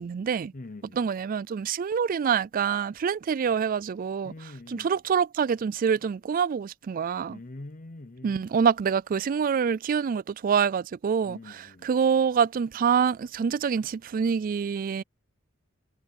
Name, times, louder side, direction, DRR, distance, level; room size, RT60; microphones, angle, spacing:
voice 1, 0.0-0.5 1.0-4.3 4.7-7.4 8.2-11.6 11.8-15.0, right 7 dB, 45° right, 0.3 m, -26 dB
voice 2, 0.5-1.1 4.2-5.0 7.3-8.5 11.2-12.0, left 2 dB, 40° left, 0.8 m, -44 dB
head